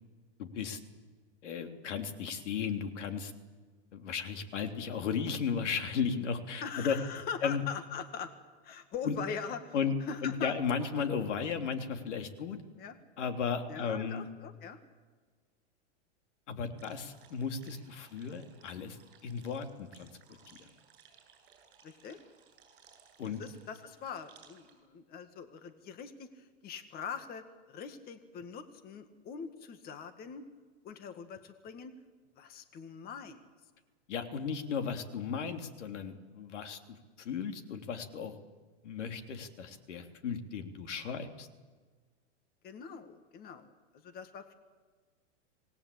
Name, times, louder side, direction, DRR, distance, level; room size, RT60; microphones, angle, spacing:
voice 1, 0.4-0.8 1.4-3.3 3.9-7.0 7.4-7.6 9.0-9.1 9.7-9.9 10.2-12.6 13.2-14.3 16.5-19.0 19.2-20.1 20.5-20.6 23.2-23.4 34.1-36.8 37.2-38.3 38.8-41.5, left 6 dB, 80° left, 5 dB, 3.4 m, -35 dB
voice 2, 6.6-8.3 8.6-9.8 10.1-10.5 12.8-13.0 13.7-14.8 21.8-22.2 23.2-30.5 30.8-31.9 32.4-33.4 42.6-44.5, left 6 dB, 25° left, 8 dB, 1.9 m, -42 dB
sound 1, 16.8-24.8, right 7 dB, 30° right, 7.7 m, -61 dB
26.5 x 19.5 x 8.6 m, 1.5 s
supercardioid pair, 150°, 36 cm